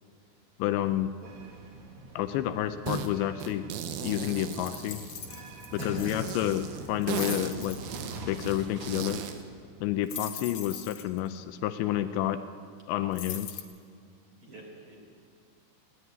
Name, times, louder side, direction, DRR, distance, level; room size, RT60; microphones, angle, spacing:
voice 1, 0.6-1.1 2.2-3.7 4.0-5.0 5.8-6.6 6.9-7.8 8.3-9.2 9.8-12.4 12.9-13.6, left 12 dB, 80° left, 10 dB, 2.8 m, -29 dB
sound 1, 1.2-9.1, right 2 dB, 45° right, 2.4 m, -45 dB
sound 2, 2.9-3.1 3.4-5.5 6.0-9.4, right 8 dB, 70° right, 2.6 m, -37 dB
sound 3, 4.5-6.3 6.9-7.8 10.1-11.2 13.1-13.6, left 9 dB, 65° left, 2.3 m, -41 dB
voice 2, 5.8-6.3 10.2-10.4 14.4-15.0, right 1 dB, 25° right, 0 dB, 4.3 m, -42 dB
21.0 x 17.5 x 9.4 m, 2.2 s
omnidirectional pair, 5.5 m